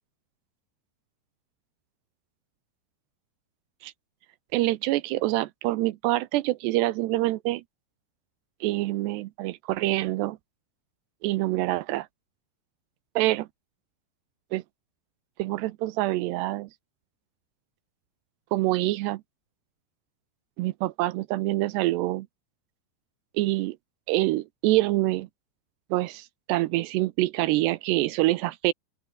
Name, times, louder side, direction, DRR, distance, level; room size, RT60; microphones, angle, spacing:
voice 1, 4.5-7.6 8.6-10.4 11.2-12.1 13.2-13.5 14.5-14.6 15.4-16.7 18.5-19.2 20.6-22.3 23.3-23.8 24.1-25.3 25.9-28.7, right 18 dB, 80° right, 2.6 m, -26 dB
open air
omnidirectional pair, 5.3 m